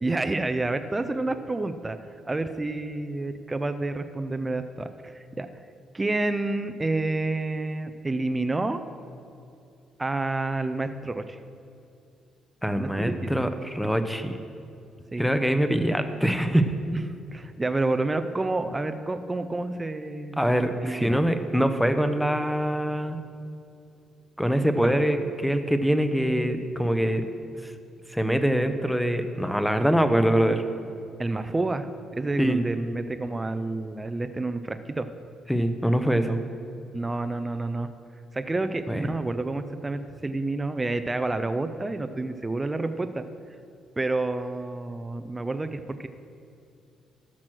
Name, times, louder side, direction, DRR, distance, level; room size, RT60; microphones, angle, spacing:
voice 1, 0.0-2.0 2.2-5.5 5.9-8.8 10.0-11.4 12.8-13.4 15.1-15.2 16.9-17.0 17.3-20.4 20.8-21.2 24.8-24.9 31.2-31.9 32.1-35.1 36.9-37.9 38.3-43.2 44.0-46.1, right 2 dB, 20° right, 9 dB, 0.5 m, -29 dB
voice 2, 12.6-14.4 15.2-16.7 20.4-23.2 24.4-27.3 27.6-27.7 28.1-30.6 32.4-32.6 35.5-36.4 38.9-39.1, equal, ahead, 8 dB, 0.8 m, -24 dB
13.5 x 6.1 x 6.2 m, 2.6 s
cardioid pair, 90°, 0 cm